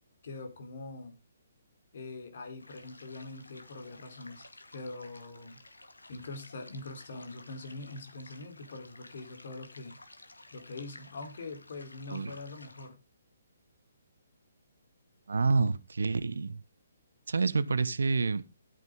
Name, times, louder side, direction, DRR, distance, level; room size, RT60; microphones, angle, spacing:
voice 1, 0.2-1.2 1.9-5.6 6.1-10.0 10.5-13.0, left 3 dB, 50° left, 3.5 m, -43 dB
sound 1, 2.6-12.9, left 2 dB, 80° left, 2.0 m, -54 dB
voice 2, 15.3-16.6 17.3-18.5, right 4 dB, 65° right, 1.0 m, -28 dB
12.0 x 9.2 x 3.7 m
figure-of-eight pair, 135°, 0 cm